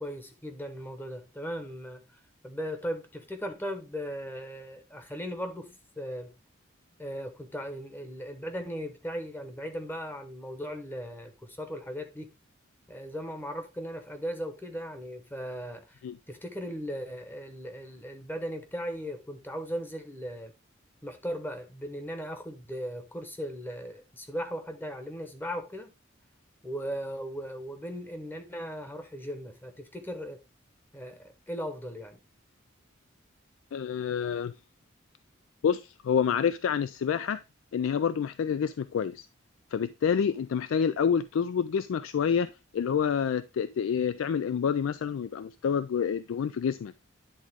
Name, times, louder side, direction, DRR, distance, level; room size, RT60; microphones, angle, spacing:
voice 1, 0.0-2.0 2.4-6.3 7.0-12.3 12.9-16.0 16.3-20.5 21.0-25.9 26.6-30.4 30.9-32.2, equal, 10° left, 1.0 m, -37 dB
voice 2, 33.7-34.5 35.6-37.4 37.7-39.3 39.7-46.9, left 7 dB, 80° left, 0.3 m, -28 dB
10.0 x 3.6 x 3.5 m
head